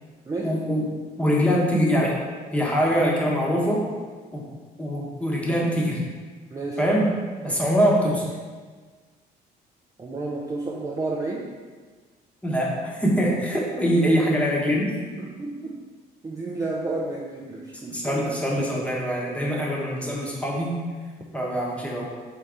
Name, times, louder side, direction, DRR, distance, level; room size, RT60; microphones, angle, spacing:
voice 1, 0.4-0.8 1.2-2.2 2.5-3.8 4.3-4.4 4.8-6.0 6.8-7.1 7.4-8.3 12.4-14.9 17.9-20.8 21.3-22.0, equal, 5° left, -3 dB, 1.0 m, -23 dB
voice 2, 10.0-11.5 15.2-15.8 16.2-18.3, right 2 dB, 20° right, -3 dB, 0.5 m, -31 dB
4.0 x 3.8 x 3.4 m, 1.5 s
cardioid pair, 110°, 17 cm